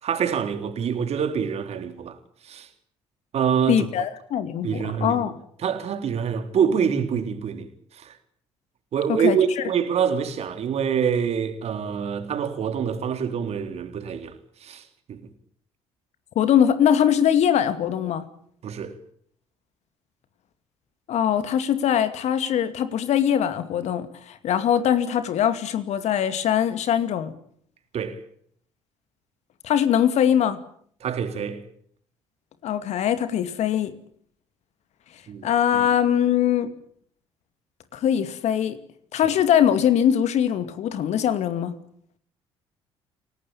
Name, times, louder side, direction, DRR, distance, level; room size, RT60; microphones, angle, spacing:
voice 1, 0.0-2.2 2.4-2.7 3.3-3.9 4.6-5.2 5.6-7.7 7.9-8.1 8.9-14.3 14.6-15.2 18.6-19.0 27.9-28.2 31.0-31.6 35.3-35.5, right 7 dB, 50° right, 3.6 m, -25 dB
voice 2, 3.7-5.4 9.1-9.6 16.4-18.3 21.1-27.3 29.6-30.6 32.6-33.9 35.4-36.7 37.9-38.8 39.1-41.7, left 9 dB, 55° left, 2.4 m, -22 dB
28.5 x 18.5 x 8.9 m
figure-of-eight pair, 50°, 14 cm